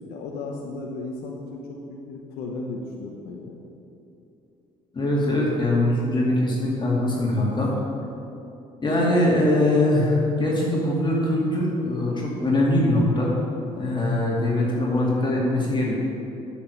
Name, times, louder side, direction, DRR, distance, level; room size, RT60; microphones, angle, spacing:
voice 1, 0.1-3.5, left 3 dB, 75° left, 0 dB, 0.9 m, -35 dB
voice 2, 4.9-7.7 8.8-13.3 13.7-16.0, left 1 dB, 30° left, -4 dB, 2.4 m, -22 dB
8.7 x 6.3 x 6.4 m, 2.8 s
supercardioid pair, 65°, 16 cm